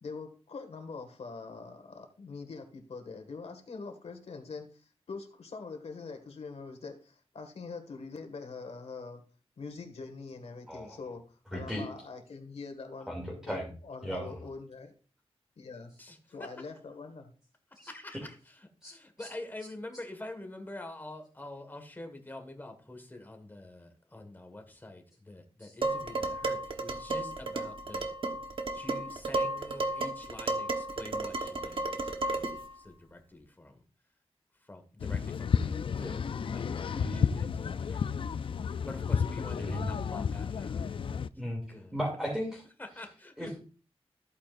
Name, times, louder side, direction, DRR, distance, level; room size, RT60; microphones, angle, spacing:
voice 1, 0.0-9.2 9.6-11.2 11.5-14.9 15.6-15.9 16.3-17.3, left 4 dB, 75° left, 7 dB, 1.8 m, -43 dB
voice 2, 10.7-11.0 11.5-11.9 13.1-13.7 14.0-14.4 17.8-17.9 18.8-18.9 19.2-19.3 25.6-25.7 36.9-37.4 39.6-39.9 41.4-42.6 43.4-43.6, equal, 5° right, -2 dB, 2.6 m, -36 dB
voice 3, 16.0-16.5 17.9-18.4 18.8-28.1 28.3-33.8 34.6-41.0 41.4-42.0 42.8-43.5, left 2 dB, 20° left, 5 dB, 1.6 m, -46 dB
Dishes pots and pans, 25.8-32.7, right 2 dB, 55° right, 1.2 m, -33 dB
sound 1, 35.0-41.3, left 6 dB, 55° left, 0.4 m, -32 dB
14.5 x 8.6 x 2.5 m, 0.38 s
wide cardioid pair, 125°, 11 cm